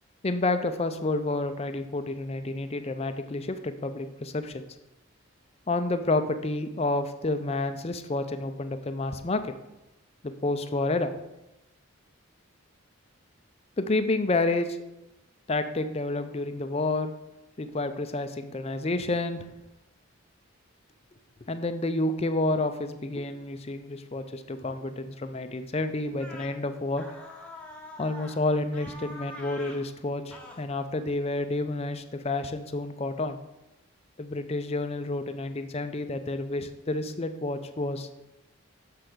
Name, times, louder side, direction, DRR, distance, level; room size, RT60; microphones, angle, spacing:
voice 1, 0.2-4.6 5.7-9.5 10.2-11.1 13.8-14.8 15.5-17.1 17.6-19.5 21.5-27.0 28.0-33.4 34.2-38.1, left 2 dB, 30° left, 9 dB, 0.4 m, -29 dB
sound 1, 26.2-26.5 27.0-28.4 28.7-29.8 30.3-30.6, left 1 dB, 5° left, 0.9 m, -44 dB
6.7 x 5.0 x 6.1 m, 0.96 s
head